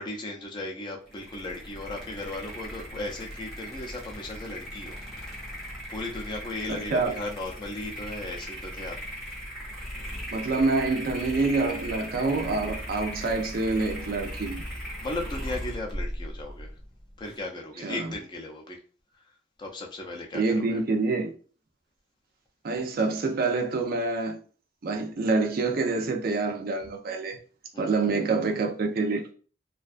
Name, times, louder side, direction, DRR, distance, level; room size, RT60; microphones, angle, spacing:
voice 1, 0.0-5.0 5.3-5.4 5.9-9.0 14.0-14.1 15.0-16.7 17.2-18.8 19.6-20.8 27.7-28.1, left 2 dB, 25° left, 0.4 m, -36 dB
sound 1, 1.1-17.4, equal, ahead, 0.8 m, -38 dB
voice 2, 6.7-7.1 10.3-14.6 17.8-18.1 20.3-21.3 22.6-24.4 24.8-27.4 27.8-29.3, right 3 dB, 50° right, 0.4 m, -27 dB
2.5 x 2.2 x 2.4 m
head